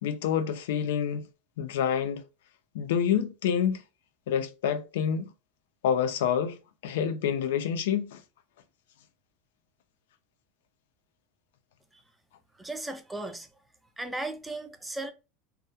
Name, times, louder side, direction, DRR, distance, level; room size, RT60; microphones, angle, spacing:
voice 1, 0.0-1.3 1.6-2.2 2.7-3.8 4.3-5.3 5.8-6.6 6.8-8.2, left 8 dB, 90° left, 0.3 m, -27 dB
voice 2, 12.6-13.5 14.0-15.1, right 2 dB, 5° right, 0.3 m, -36 dB
2.3 x 2.0 x 2.7 m
supercardioid pair, 155°, 0 cm